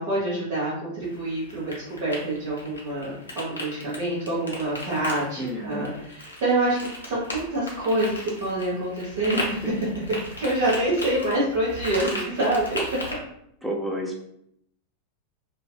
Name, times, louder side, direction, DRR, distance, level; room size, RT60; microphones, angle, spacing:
voice 1, 0.0-5.9 6.4-6.8 7.1-9.6 10.4-12.8, right 1 dB, 50° right, -9 dB, 0.9 m, -26 dB
sound 1, 1.0-13.1, left 1 dB, 75° left, 0.6 m, -37 dB
voice 2, 5.4-5.9 9.2-9.5 12.0-12.3 13.6-14.2, equal, ahead, -1 dB, 0.5 m, -32 dB
2.6 x 2.2 x 2.3 m, 0.74 s
figure-of-eight pair, 90°, 0 cm